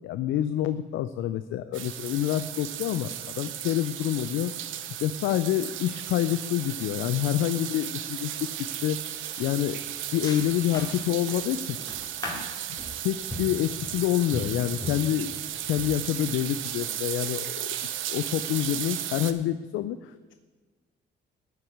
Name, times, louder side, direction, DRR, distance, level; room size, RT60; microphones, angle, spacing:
voice 1, 0.0-4.5 4.9-9.0 9.4-9.8 10.1-11.8 13.0-15.3 15.7-20.3, left 12 dB, 85° left, 12 dB, 0.5 m, -27 dB
sound 1, 1.7-19.3, right 11 dB, 80° right, 0.8 m, -35 dB
sound 2, 8.3-8.5 8.9-16.5, left 1 dB, 20° left, 2.1 m, -40 dB
13.0 x 4.7 x 8.6 m, 1.4 s
cardioid pair, 90°, 20 cm